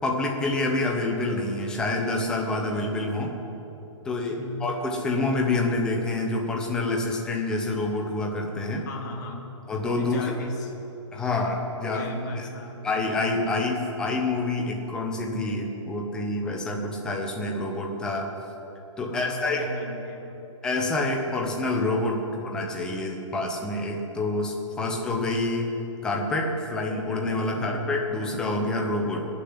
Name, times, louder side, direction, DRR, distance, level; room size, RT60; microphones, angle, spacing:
voice 1, 0.0-3.3 4.0-8.9 9.7-10.2 11.1-12.1 12.4-12.5 12.8-18.3 19.0-19.7 20.6-25.7 26.0-29.3, left 2 dB, 5° left, 0 dB, 0.9 m, -27 dB
voice 2, 4.3-4.7 8.9-9.6 10.0-10.7 11.9-12.9 19.0-20.4 27.5-27.9, left 1 dB, 35° left, 0 dB, 2.2 m, -37 dB
19.0 x 7.0 x 9.7 m, 3.0 s
hypercardioid pair, 180°, 16 cm